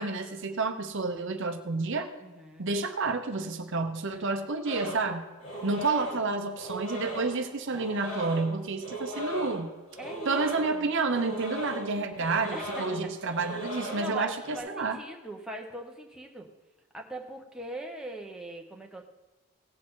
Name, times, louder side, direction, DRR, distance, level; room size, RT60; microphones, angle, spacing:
voice 1, 0.0-2.1 2.6-5.2 5.6-9.7 10.3-15.0, right 3 dB, 55° right, 7 dB, 0.8 m, -30 dB
voice 2, 2.2-2.7 5.6-5.8 10.0-10.4 10.7-10.9 12.0-13.1 13.8-16.5 16.9-19.0, right 1 dB, 5° right, 0 dB, 1.0 m, -41 dB
sound 1, 4.6-14.6, equal, 60° left, 3.5 m, -38 dB
17.5 x 7.5 x 3.8 m, 1.2 s
head